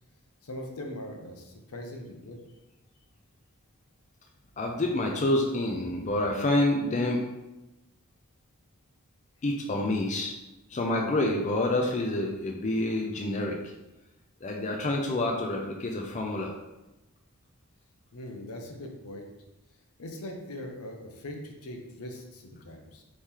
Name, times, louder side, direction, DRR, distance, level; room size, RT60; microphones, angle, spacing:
voice 1, 0.4-2.4 18.1-19.3 20.0-23.0, left 1 dB, 85° left, 2 dB, 0.7 m, -41 dB
voice 2, 4.6-7.2 9.4-10.3 10.7-13.6 14.4-16.5, left 1 dB, 30° left, 1 dB, 0.4 m, -27 dB
4.2 x 3.2 x 3.6 m, 0.99 s
head